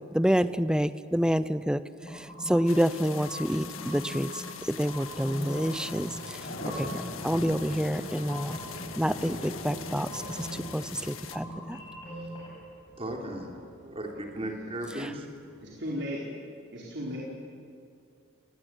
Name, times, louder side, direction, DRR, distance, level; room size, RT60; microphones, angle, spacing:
voice 1, 0.0-1.8 2.1-6.4 6.7-8.6 9.0-11.8, equal, 5° right, 14 dB, 0.6 m, -28 dB
sound 1, 2.0-15.9, equal, 60° left, 5.3 m, -43 dB
sound 2, 2.0-12.5, equal, 25° left, 7.8 m, -43 dB
sound 3, 2.7-11.4, left 8 dB, 85° left, 1.7 m, -44 dB
voice 2, 13.0-13.5 13.8-15.3, right 1 dB, 30° right, 1 dB, 3.8 m, -36 dB
voice 3, 14.1-14.5 14.8-14.9 15.6-16.2 16.7-17.2, equal, 55° right, -5 dB, 4.9 m, -36 dB
29.5 x 20.5 x 9.2 m, 2.4 s
head